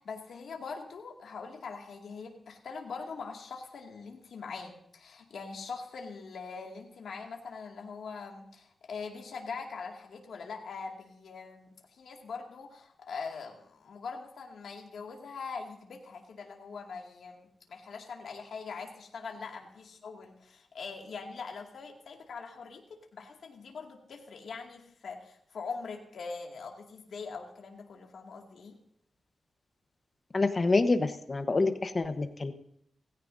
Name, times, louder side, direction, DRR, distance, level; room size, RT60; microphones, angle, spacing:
voice 1, 0.0-28.8, left 5 dB, 75° left, 1 dB, 2.1 m, -42 dB
voice 2, 30.3-32.5, left 3 dB, 30° left, 8 dB, 1.0 m, -27 dB
18.0 x 16.0 x 2.7 m, 0.72 s
wide cardioid pair, 125°, 0 cm